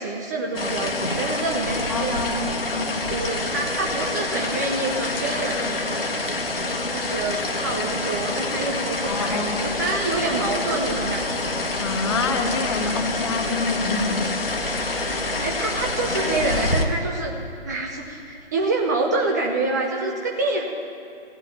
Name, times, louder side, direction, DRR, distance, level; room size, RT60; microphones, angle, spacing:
voice 1, 0.0-2.4 3.0-6.0 6.9-11.3 15.4-17.3 17.7-20.6, right 2 dB, 20° right, 1 dB, 0.6 m, -27 dB
sound 1, 0.5-16.8, left 2 dB, 65° left, 1.6 m, -27 dB
voice 2, 1.9-3.1 9.1-9.6 11.8-14.4, left 4 dB, 25° left, 6 dB, 1.0 m, -27 dB
15.0 x 8.2 x 9.1 m, 2.6 s
figure-of-eight pair, 140°, 31 cm